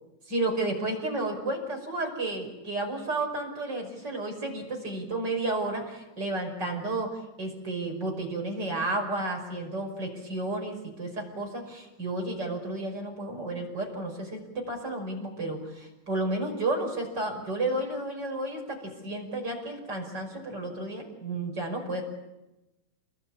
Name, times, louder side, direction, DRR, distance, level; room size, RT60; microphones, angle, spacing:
voice 1, 0.3-14.4 14.7-22.0, right 2 dB, 20° right, 2 dB, 5.7 m, -32 dB
28.5 x 22.5 x 8.8 m, 0.99 s
omnidirectional pair, 5.6 m